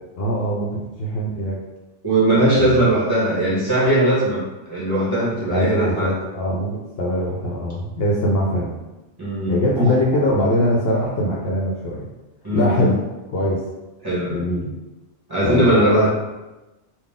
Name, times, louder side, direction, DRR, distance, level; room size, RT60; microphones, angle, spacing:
voice 1, 0.2-0.7 1.0-1.6 2.6-2.8 5.5-8.8 9.5-12.1 12.5-13.0 13.3-13.6 14.3-14.7 15.4-15.7, equal, 60° left, -3 dB, 0.8 m, -22 dB
voice 2, 2.0-6.1 9.2-9.9 12.4-12.9 14.0-14.4 15.3-16.1, right 1 dB, 20° right, -8 dB, 1.3 m, -19 dB
3.9 x 2.2 x 3.5 m, 1.1 s
omnidirectional pair, 1.2 m